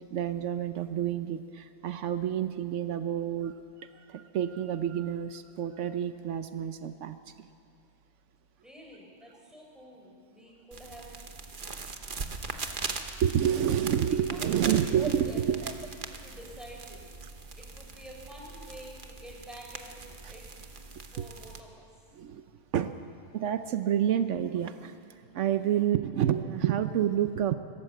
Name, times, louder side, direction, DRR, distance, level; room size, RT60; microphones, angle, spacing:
voice 1, 0.0-7.5 13.2-15.7 20.2-20.3 20.9-21.3 22.1-22.4 22.7-22.9 23.3-25.0 25.3-27.5, right 10 dB, 80° right, 10 dB, 1.0 m, -29 dB
voice 2, 8.6-11.1 14.1-15.6 16.2-17.0 17.6-20.4 21.1-21.8, equal, ahead, -2 dB, 4.5 m, -48 dB
sound 1, 10.7-21.6, right 4 dB, 45° right, 1.2 m, -40 dB
25.5 x 13.0 x 7.7 m, 2.5 s
omnidirectional pair, 1.2 m